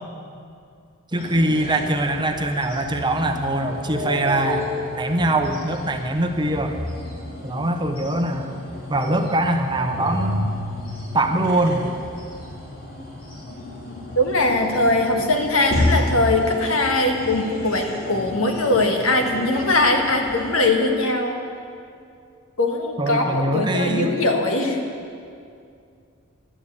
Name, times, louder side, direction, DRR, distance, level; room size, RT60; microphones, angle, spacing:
sound 1, 1.1-20.5, left 1 dB, 45° left, 2.6 m, -31 dB
voice 1, 1.1-4.7 5.0-6.8 7.4-8.5 8.9-10.5 11.1-11.9 23.0-24.1, right 1 dB, 20° right, 4 dB, 0.9 m, -22 dB
voice 2, 14.1-21.4 22.6-24.8, left 2 dB, 70° left, 3 dB, 1.6 m, -21 dB
12.5 x 9.4 x 8.3 m, 2.4 s
head